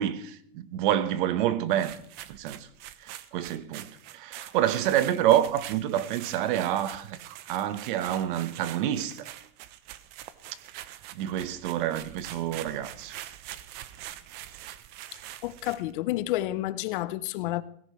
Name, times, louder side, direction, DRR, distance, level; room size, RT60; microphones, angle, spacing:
voice 1, 0.0-2.0 2.3-2.7 3.0-9.3 11.1-13.2, right 11 dB, 50° right, 1.2 m, -28 dB
sound 1, 1.7-15.9, right 13 dB, 30° right, 0.7 m, -44 dB
voice 2, 15.1-17.6, left 15 dB, 55° left, 0.7 m, -30 dB
17.5 x 16.0 x 3.2 m
supercardioid pair, 155°, 32 cm